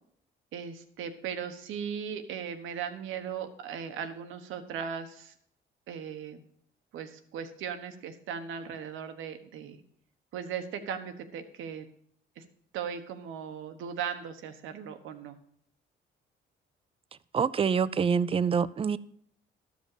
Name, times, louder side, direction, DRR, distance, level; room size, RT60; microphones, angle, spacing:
voice 1, 0.5-5.3 5.9-6.4 6.9-9.8 10.3-11.9 12.4-12.5 12.7-15.4, right 7 dB, 85° right, 7 dB, 1.2 m, -38 dB
voice 2, 17.3-19.0, right 6 dB, 30° right, 17 dB, 0.4 m, -26 dB
12.5 x 5.2 x 6.7 m, 0.67 s
cardioid pair, 90°, 20 cm